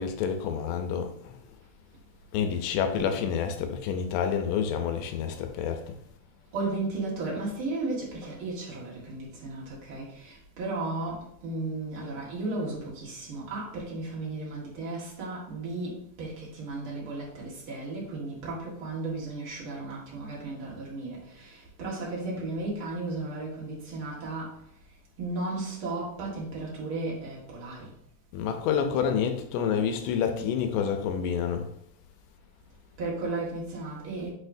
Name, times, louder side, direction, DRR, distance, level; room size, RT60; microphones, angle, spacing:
voice 1, 0.0-1.3 2.3-5.8 28.3-31.7, left 7 dB, 85° left, 2.8 m, -28 dB
voice 2, 2.5-3.1 6.5-24.6 25.2-27.9 33.0-34.3, right 2 dB, 50° right, 1.6 m, -35 dB
8.3 x 4.2 x 2.7 m
omnidirectional pair, 4.9 m